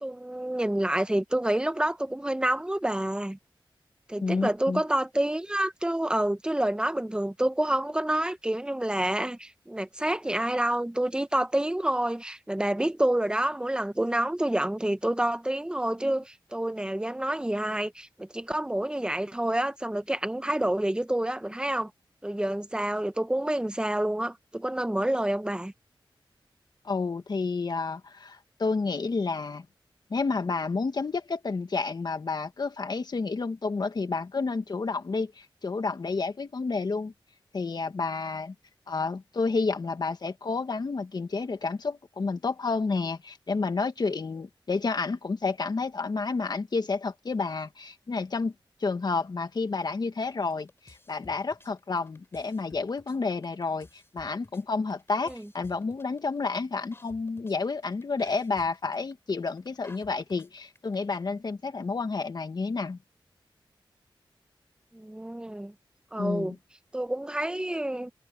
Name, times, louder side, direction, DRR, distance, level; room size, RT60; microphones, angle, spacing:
voice 1, 0.0-3.4 4.1-21.9 22.2-25.7 55.3-55.4 64.9-65.7 66.1-66.5 66.9-68.1, right 1 dB, 10° right, 0.9 m, -28 dB
voice 2, 4.2-4.8 26.8-29.6 30.1-37.1 37.5-38.5 38.9-48.5 48.8-63.0 66.2-66.6, left 4 dB, 55° left, 1.6 m, -30 dB
sound 1, 50.2-61.2, left 2 dB, 25° left, 7.1 m, -55 dB
wide cardioid pair, 125°, 9 cm